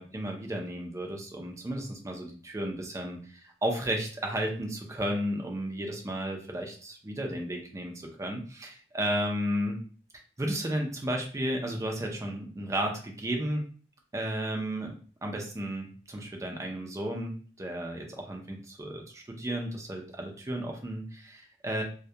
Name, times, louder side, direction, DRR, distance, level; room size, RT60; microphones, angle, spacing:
voice 1, 0.0-9.8 10.4-13.7 14.1-14.9 15.2-17.3 17.6-21.8, right 1 dB, 15° right, 1 dB, 0.4 m, -33 dB
2.2 x 2.2 x 2.7 m, 0.42 s
head